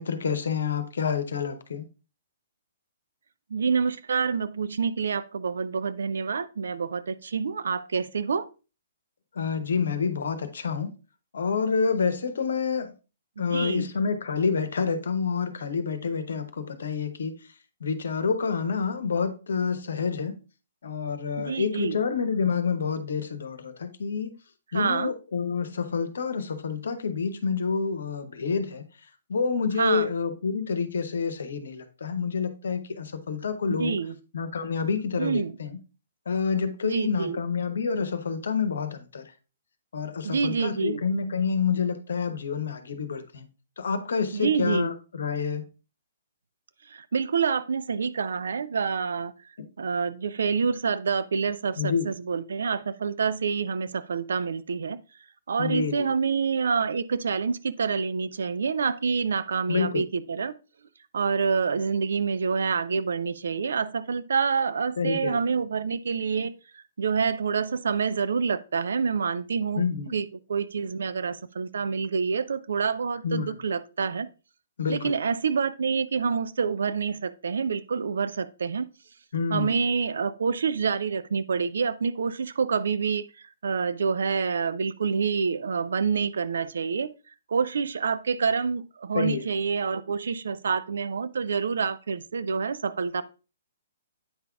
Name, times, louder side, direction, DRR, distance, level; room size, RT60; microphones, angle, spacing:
voice 1, 0.0-1.9 9.3-10.9 11.3-12.9 13.4-17.3 17.8-20.4 20.8-24.3 24.7-28.9 29.3-34.0 34.3-35.8 36.3-39.3 39.9-43.5 43.8-45.7 49.6-49.7 51.8-52.1 55.6-56.1 59.7-60.0 65.0-65.4 69.8-70.1 73.2-73.6 74.8-75.1 79.3-79.9 89.1-89.4, left 5 dB, 60° left, 0.9 m, -28 dB
voice 2, 3.5-8.5 13.4-13.9 21.4-22.0 24.7-25.1 29.8-30.1 33.7-34.2 35.2-35.5 36.8-37.4 40.2-41.0 44.3-44.9 46.9-49.3 49.8-55.0 55.5-60.5 61.1-69.9 70.1-74.3 74.9-78.9 79.5-87.1 87.5-93.2, right 5 dB, 60° right, 0.5 m, -27 dB
8.7 x 5.7 x 2.4 m
figure-of-eight pair, 120°, 0 cm